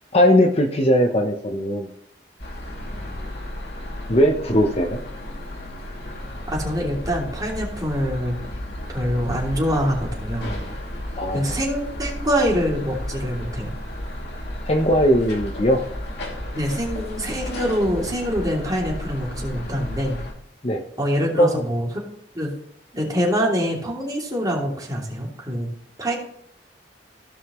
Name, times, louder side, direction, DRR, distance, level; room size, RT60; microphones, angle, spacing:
voice 1, 0.1-1.9 4.1-5.0 11.2-11.6 14.7-15.8 20.6-20.8 21.4-21.7, equal, 35° left, 4 dB, 0.9 m, -19 dB
sound 1, 2.4-20.3, left 1 dB, 65° left, 2.7 m, -33 dB
voice 2, 6.5-8.3 8.9-10.5 11.3-13.7 16.5-20.2 21.0-22.0 22.3-22.5 22.9-25.7 26.0-26.2, equal, 20° right, -2 dB, 2.8 m, -25 dB
16.0 x 5.6 x 3.1 m, 0.70 s
head